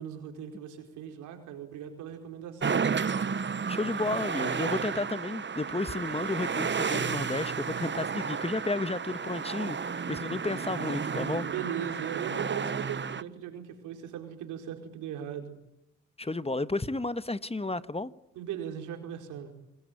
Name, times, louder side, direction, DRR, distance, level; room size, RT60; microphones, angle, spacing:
voice 1, 0.0-2.9 11.4-15.5 18.3-19.5, right 9 dB, 90° right, 4.8 m, -38 dB
sound 1, 2.6-13.2, right 6 dB, 40° right, 1.2 m, -32 dB
voice 2, 3.7-11.5 16.2-18.1, left 2 dB, 20° left, 1.6 m, -32 dB
27.5 x 21.0 x 9.4 m
supercardioid pair, 50°, 29 cm